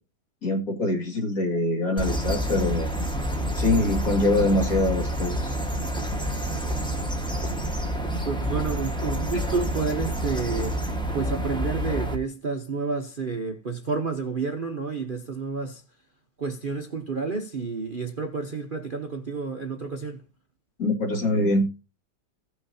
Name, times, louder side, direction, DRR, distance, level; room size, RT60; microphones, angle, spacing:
voice 1, 0.4-2.9 3.6-5.6 20.8-21.7, left 2 dB, 55° left, 2.6 m, -24 dB
sound 1, 2.0-12.1, right 1 dB, 5° left, 1.1 m, -28 dB
voice 2, 8.2-10.8 11.1-15.8 16.4-20.2, right 4 dB, 40° right, 0.9 m, -30 dB
16.5 x 6.4 x 2.7 m
omnidirectional pair, 1.9 m